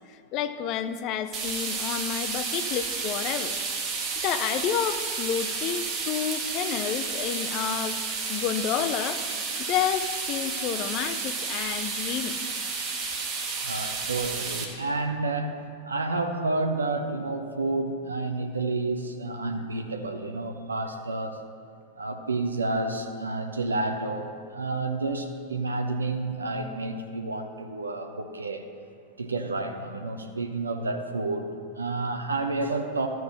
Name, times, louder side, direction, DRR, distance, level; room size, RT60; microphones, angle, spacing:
voice 1, 0.3-3.6 4.2-8.0 8.3-9.2 9.6-12.4, left 9 dB, 40° left, 11 dB, 0.5 m, -30 dB
sound 1, 1.3-14.6, right 4 dB, 30° right, 1.3 m, -31 dB
voice 2, 13.6-15.6 15.8-21.4 22.0-28.6 29.2-33.1, right 2 dB, 75° right, 5 dB, 0.6 m, -30 dB
13.5 x 4.7 x 5.6 m, 2.2 s
figure-of-eight pair, 90°, 0 cm